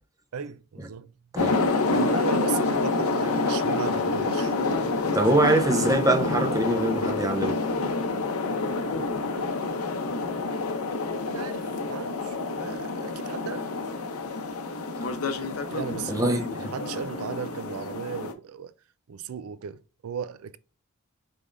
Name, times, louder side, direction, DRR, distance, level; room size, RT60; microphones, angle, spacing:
voice 1, 0.3-1.1 1.9-5.2 10.1-10.7 11.2-13.8 15.7-18.7 19.1-20.6, right 7 dB, 75° right, 0.4 m, -37 dB
sound 1, 1.4-18.3, left 3 dB, 90° left, 0.7 m, -28 dB
voice 2, 5.1-7.6 16.1-16.7, right 1 dB, 15° right, 0.6 m, -24 dB
5.3 x 3.4 x 2.5 m
head